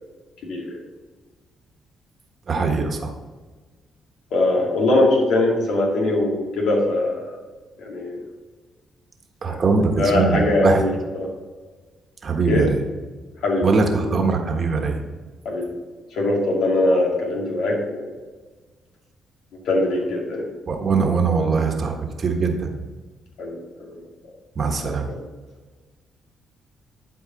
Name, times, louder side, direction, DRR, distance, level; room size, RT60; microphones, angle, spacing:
voice 1, 0.4-0.8 4.3-7.2 7.8-8.2 9.4-9.6 10.0-11.3 12.5-12.7 13.4-13.7 14.0-14.2 15.4-15.7 16.1-18.0 19.7-20.5 23.4-24.0 25.1-25.2, left 2 dB, 80° left, -1 dB, 2.2 m, -21 dB
voice 2, 2.5-3.1 9.4-10.8 12.2-12.8 13.6-15.0 20.7-22.7 24.5-25.1, right 4 dB, 45° right, 3 dB, 1.3 m, -21 dB
11.5 x 4.7 x 4.1 m, 1.4 s
cardioid pair, 90°, 0 cm